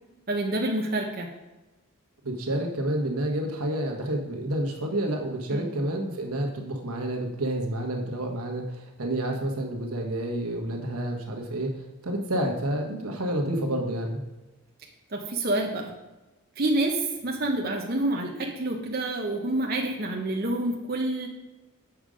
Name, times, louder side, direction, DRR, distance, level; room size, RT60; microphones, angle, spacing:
voice 1, 0.3-1.3 5.5-5.7 15.1-15.9 16.6-21.3, right 2 dB, 45° right, 0 dB, 0.8 m, -28 dB
voice 2, 2.2-14.2, right 1 dB, 85° right, 2 dB, 1.3 m, -29 dB
7.1 x 5.2 x 5.0 m, 1.1 s
head